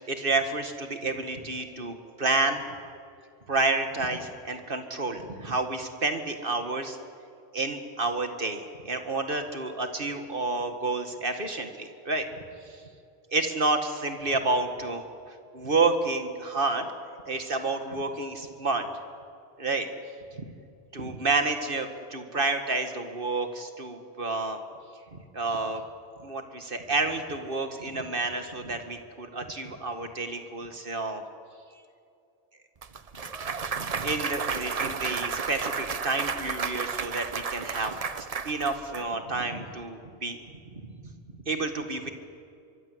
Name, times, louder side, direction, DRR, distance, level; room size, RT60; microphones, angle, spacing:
voice 1, 0.1-2.6 3.5-7.0 7.5-12.3 12.7-12.8 13.3-16.9 17.3-18.9 19.6-19.9 20.3-20.5 20.9-24.6 25.1-25.8 26.2-31.2 33.7-40.4 40.8-41.1 41.5-42.1, right 3 dB, 55° right, 6 dB, 2.2 m, -30 dB
Clapping / Cheering / Applause, 32.8-39.0, right 5 dB, 40° right, 0.8 m, -32 dB
27.0 x 24.0 x 8.1 m, 2.5 s
omnidirectional pair, 1.1 m